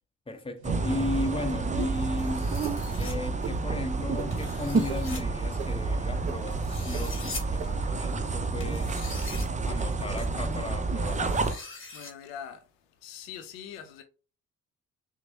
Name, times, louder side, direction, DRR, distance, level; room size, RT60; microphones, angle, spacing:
voice 1, 0.3-2.5 3.0-9.0 9.6-11.4, left 2 dB, 15° left, 1.0 m, -35 dB
sound 1, 0.6-11.5, right 3 dB, 20° right, 0.6 m, -29 dB
sound 2, 0.6-1.1 1.8-1.9 2.6-2.8 3.4-3.5 4.2-4.3 4.9-5.0 5.6-5.7 6.3-6.4 6.9-7.0 7.6-7.7, right 9 dB, 80° right, 0.5 m, -36 dB
sound 3, 2.2-3.1 4.3-5.2 6.5-7.4 8.6-9.5 10.2-10.3 11.1-12.1, left 3 dB, 30° left, 1.4 m, -42 dB
voice 2, 9.3-9.7 10.3-10.4 11.5-14.0, left 8 dB, 75° left, 0.6 m, -45 dB
5.8 x 2.2 x 2.9 m
figure-of-eight pair, 40°, 41 cm